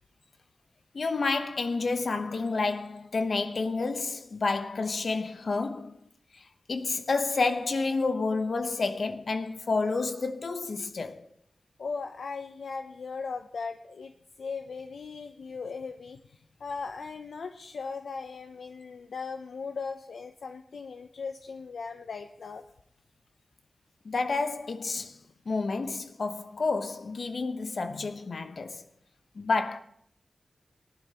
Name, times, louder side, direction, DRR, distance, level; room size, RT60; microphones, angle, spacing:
voice 1, 0.9-6.0 6.3-6.4 6.7-11.2 24.0-25.2 25.5-28.8 29.3-29.8, left 3 dB, 70° left, 0.8 m, -29 dB
voice 2, 11.8-14.1 14.4-22.6 27.9-28.1, left 4 dB, 85° left, 0.5 m, -38 dB
18.5 x 11.0 x 2.9 m
cardioid pair, 50°, 0 cm